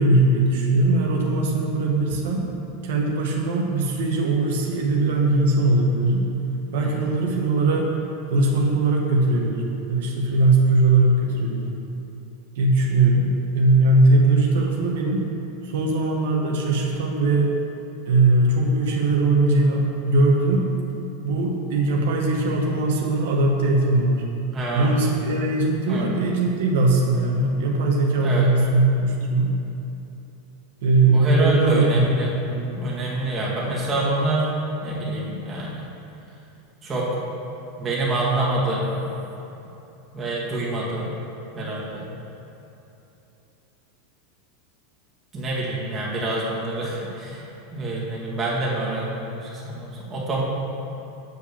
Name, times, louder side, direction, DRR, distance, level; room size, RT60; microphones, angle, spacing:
voice 1, 0.0-2.5 2.8-6.3 6.7-7.9 8.3-11.8 12.6-15.3 15.6-17.5 18.1-20.7 21.2-24.2 24.7-29.5 30.8-32.1 32.4-32.8, right 2 dB, 75° right, -1 dB, 1.2 m, -20 dB
voice 2, 24.5-25.0 25.9-26.1 28.2-28.5 31.1-32.3 32.8-34.5 34.8-35.9 36.8-37.2 37.8-39.0 40.1-41.1 41.5-42.0 45.3-47.4 47.7-50.4, right 2 dB, 20° right, -6 dB, 2.0 m, -26 dB
7.9 x 5.1 x 7.0 m, 2.9 s
supercardioid pair, 155°, 0 cm